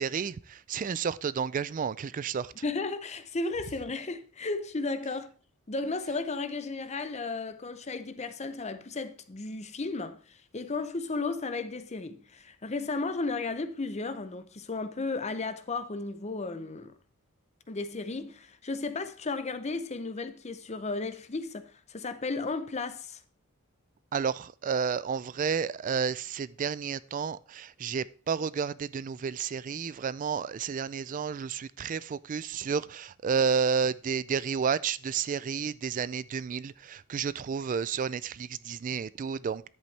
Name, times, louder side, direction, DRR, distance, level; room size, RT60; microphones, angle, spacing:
voice 1, 0.0-2.5 24.1-39.6, right 6 dB, 35° right, 0.3 m, -31 dB
voice 2, 2.6-5.3 5.7-16.9 17.7-23.2, left 3 dB, 30° left, 0.7 m, -34 dB
10.5 x 8.3 x 3.3 m
head